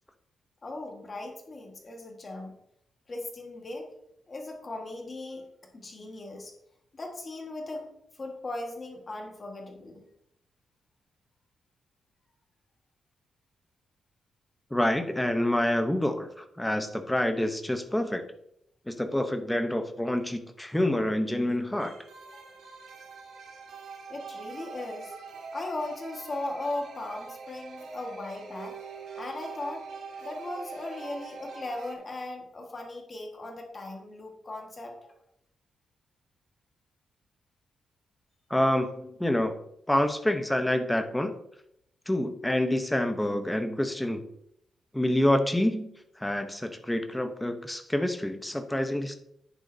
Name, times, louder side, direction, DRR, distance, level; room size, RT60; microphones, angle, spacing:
voice 1, 0.6-2.6 3.1-3.9 4.3-5.5 5.7-6.5 6.9-7.9 8.1-10.1 22.3-22.5 24.1-25.1 25.5-28.8 29.1-29.9 30.2-35.1, left 2 dB, 25° left, 2 dB, 1.5 m, -38 dB
voice 2, 14.7-18.2 18.9-21.9 38.5-39.6 39.9-41.3 42.1-44.2 44.9-45.9 46.2-49.2, left 1 dB, 5° left, 7 dB, 0.7 m, -27 dB
sound 1, 21.7-31.9, right 5 dB, 80° right, 2.2 m, -43 dB
10.5 x 9.7 x 2.7 m, 0.77 s
wide cardioid pair, 180°, 0 cm